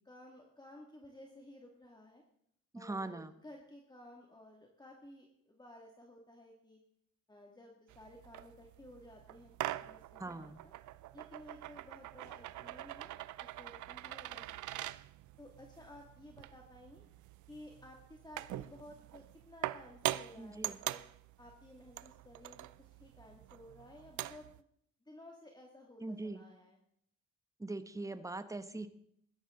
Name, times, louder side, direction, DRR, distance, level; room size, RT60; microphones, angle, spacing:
voice 1, 0.1-2.2 2.7-6.8 7.3-10.7 11.1-14.4 14.7-14.9 15.4-17.0 17.5-21.0 21.4-24.5 25.1-26.8, left 1 dB, 15° left, 0 dB, 2.2 m, -55 dB
voice 2, 2.7-3.3 10.2-10.6 20.4-20.8 26.0-26.4 27.6-28.9, right 2 dB, 10° right, 11 dB, 1.0 m, -41 dB
sound 1, 7.9-24.6, right 15 dB, 75° right, 0.6 m, -44 dB
16.5 x 12.5 x 3.8 m, 0.70 s
cardioid pair, 90°, 30 cm